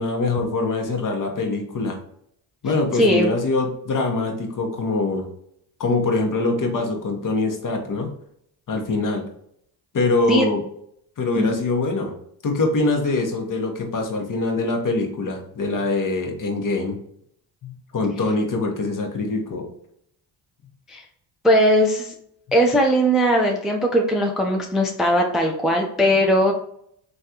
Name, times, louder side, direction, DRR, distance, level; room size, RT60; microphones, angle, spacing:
voice 1, 0.0-2.0 2.6-5.3 5.8-8.1 8.7-9.2 9.9-10.6 11.2-12.1 12.4-17.0 17.6-19.7, left 3 dB, 40° left, 3 dB, 0.9 m, -23 dB
voice 2, 2.9-3.3 10.3-10.5 11.4-11.5 20.9-21.0 21.4-22.1 22.5-26.5, equal, ahead, 1 dB, 0.5 m, -19 dB
3.2 x 2.3 x 2.7 m, 0.70 s
hypercardioid pair, 50°, 49 cm